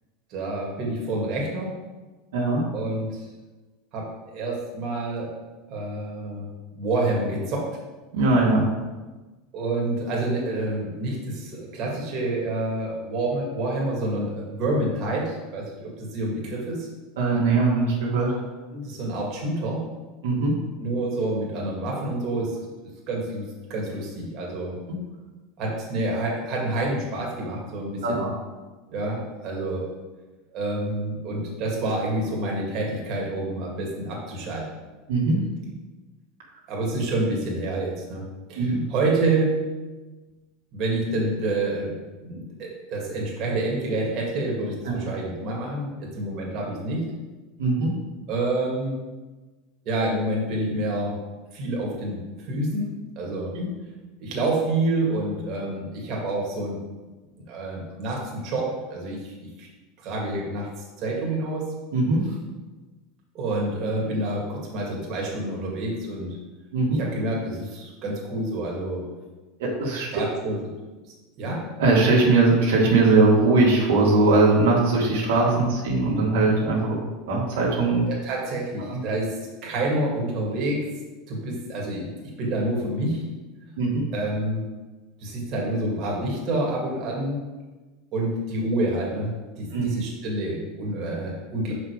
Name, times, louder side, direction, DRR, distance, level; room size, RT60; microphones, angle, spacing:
voice 1, 0.3-1.7 2.7-3.2 3.9-5.4 5.7-7.6 9.5-16.9 18.7-19.8 20.8-22.6 23.1-24.8 25.6-28.3 28.9-29.8 30.5-34.7 36.7-38.2 38.5-39.6 40.7-47.1 48.3-49.0 49.9-51.1 51.5-53.5 54.2-56.8 57.5-59.3 59.6-59.7 60.0-60.7 61.0-61.7 62.2-62.3 63.3-66.4 66.9-69.1 70.1-70.6 71.4-71.6 75.6-75.7 78.1-80.8 81.3-83.2 84.1-84.6 85.2-87.4 88.1-89.3 89.6-91.7, right 2 dB, 50° right, -3 dB, 2.0 m, -28 dB
voice 2, 2.3-2.6 8.1-8.7 17.2-18.3 20.2-20.5 28.0-28.3 35.1-35.4 38.6-38.8 44.9-45.0 47.6-47.9 53.6-53.7 61.9-62.2 66.7-67.0 69.6-70.1 71.8-77.0 77.3-78.0 78.9-79.0 83.8-84.1 89.7-89.9, right 3 dB, 85° right, -4 dB, 1.9 m, -20 dB
5.7 x 5.0 x 5.0 m, 1.2 s
supercardioid pair, 115°, 0 cm